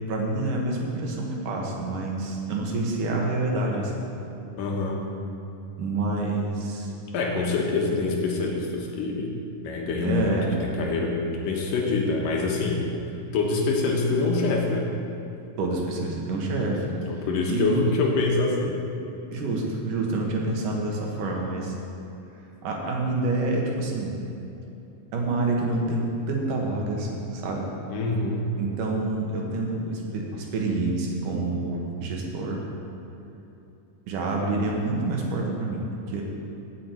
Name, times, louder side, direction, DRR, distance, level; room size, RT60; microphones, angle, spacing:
voice 1, 0.1-4.1 5.8-6.9 10.0-10.5 15.6-16.9 17.5-17.8 19.3-21.8 22.6-24.2 25.1-27.7 28.6-32.6 34.1-36.2, right 2 dB, 75° right, -1 dB, 3.0 m, -27 dB
voice 2, 4.6-5.0 7.1-9.3 9.6-12.8 13.3-14.9 16.9-18.8 19.4-19.5 27.9-28.6, left 3 dB, 80° left, -1 dB, 3.0 m, -25 dB
16.0 x 7.4 x 4.5 m, 2.9 s
omnidirectional pair, 3.8 m